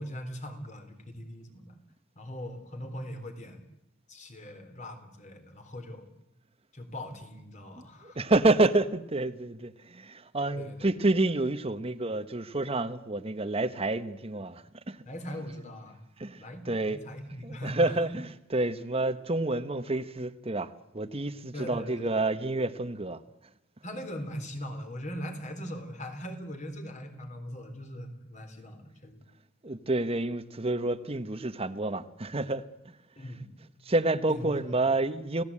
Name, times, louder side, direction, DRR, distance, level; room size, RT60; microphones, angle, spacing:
voice 1, 0.0-1.8 2.2-3.6 4.1-6.1 6.7-8.2 10.5-10.9 15.1-16.0 16.4-18.1 21.5-22.2 23.8-29.2 33.2-33.5 34.3-34.8, equal, 40° left, 3.8 m, -40 dB
voice 2, 8.0-15.0 16.2-17.0 17.4-23.2 29.6-32.6 33.9-35.4, right 2 dB, 30° right, 1.1 m, -29 dB
28.5 x 17.5 x 8.6 m
head